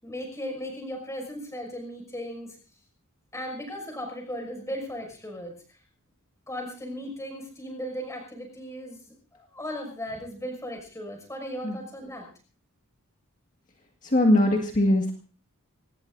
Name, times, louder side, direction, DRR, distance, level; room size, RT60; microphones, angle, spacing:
voice 1, 0.0-2.6 3.3-5.5 6.5-12.3, equal, 15° left, 3 dB, 6.0 m, -37 dB
voice 2, 14.1-15.1, left 1 dB, 35° left, 1 dB, 1.8 m, -21 dB
25.5 x 19.0 x 2.6 m, 0.37 s
head